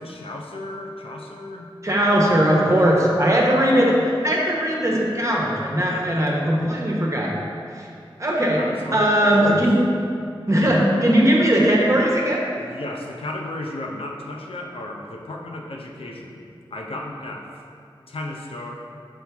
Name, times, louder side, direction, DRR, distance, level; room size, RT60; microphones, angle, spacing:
voice 1, 0.0-1.7 2.6-3.0 5.8-6.4 8.5-9.4 12.7-16.4 16.7-17.5 18.1-18.7, left 1 dB, 80° left, 0 dB, 0.6 m, -34 dB
voice 2, 1.8-7.3 7.7-7.9 8.2-8.6 8.9-9.8 10.5-12.4, equal, 35° right, -3 dB, 1.1 m, -19 dB
6.1 x 4.5 x 3.5 m, 2.4 s
wide cardioid pair, 60°, 9 cm